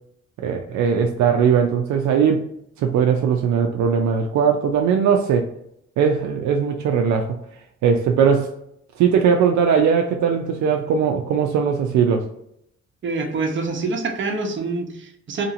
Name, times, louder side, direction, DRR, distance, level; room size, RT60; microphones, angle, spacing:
voice 1, 0.4-2.5 2.8-5.5 6.0-7.4 7.8-8.5 9.0-12.3, right 7 dB, 75° right, 0.4 m, -19 dB
voice 2, 13.0-15.4, right 3 dB, 40° right, 0.8 m, -26 dB
2.8 x 2.7 x 2.6 m
cardioid pair, 90°, 30 cm